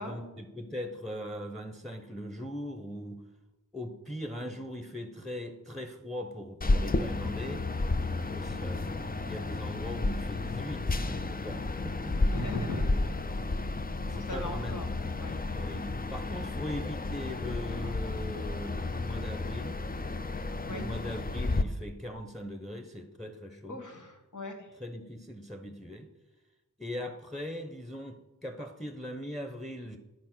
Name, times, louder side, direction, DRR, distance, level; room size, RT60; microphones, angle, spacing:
voice 1, 0.0-3.2 3.7-7.6 8.3-12.2 14.1-15.0 15.6-19.8 20.6-23.8 24.8-26.1 26.8-30.0, equal, ahead, 7 dB, 1.0 m, -40 dB
sound 1, 6.6-21.6, left 2 dB, 30° left, 0.6 m, -32 dB
voice 2, 12.3-12.9 14.1-14.9 15.2-15.4 20.6-20.9 23.7-24.7, left 2 dB, 70° left, 2 dB, 1.9 m, -37 dB
10.0 x 4.9 x 6.2 m, 1.1 s
wide cardioid pair, 45°, 32 cm